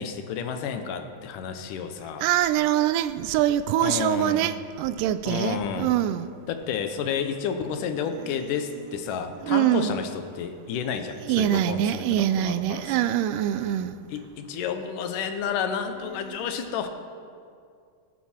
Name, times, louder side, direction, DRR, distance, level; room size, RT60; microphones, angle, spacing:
voice 1, 0.0-2.3 3.8-4.5 5.2-5.9 6.5-13.1 14.1-16.9, left 7 dB, 80° left, 2.4 m, -31 dB
voice 2, 2.2-6.3 9.5-10.0 11.3-14.0, right 12 dB, 85° right, 2.1 m, -24 dB
18.5 x 9.2 x 4.4 m
omnidirectional pair, 3.7 m